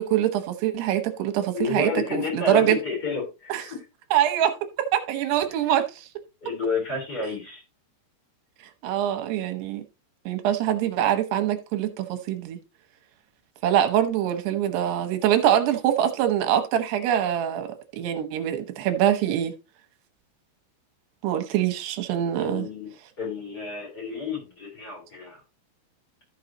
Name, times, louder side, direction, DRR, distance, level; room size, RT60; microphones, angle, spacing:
voice 1, 0.0-2.8 3.5-3.6 4.1-4.5 4.8-6.1 8.8-9.8 10.3-12.6 13.6-19.5 21.2-22.7, right 11 dB, 85° right, 3.0 m, -24 dB
voice 2, 1.5-3.8 6.4-7.6 22.4-22.9 23.2-25.4, left 4 dB, 25° left, 4.2 m, -30 dB
13.0 x 6.2 x 2.9 m
omnidirectional pair, 4.7 m